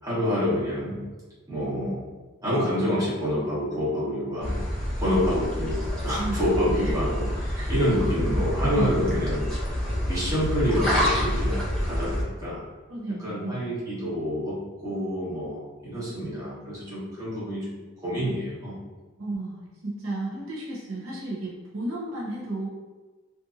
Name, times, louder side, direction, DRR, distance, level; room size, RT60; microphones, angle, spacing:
voice 1, 0.0-1.0 1.5-2.0 2.4-4.6 5.0-5.8 6.0-9.5 10.1-12.6 13.1-17.7 18.0-18.8, equal, 15° right, -10 dB, 1.0 m, -27 dB
sound 1, 4.4-12.2, equal, 5° left, 0.6 m, -28 dB
voice 2, 8.0-9.1 12.9-13.7 19.2-22.7, right 2 dB, 75° right, -6 dB, 0.7 m, -33 dB
2.7 x 2.5 x 2.4 m, 1.3 s
head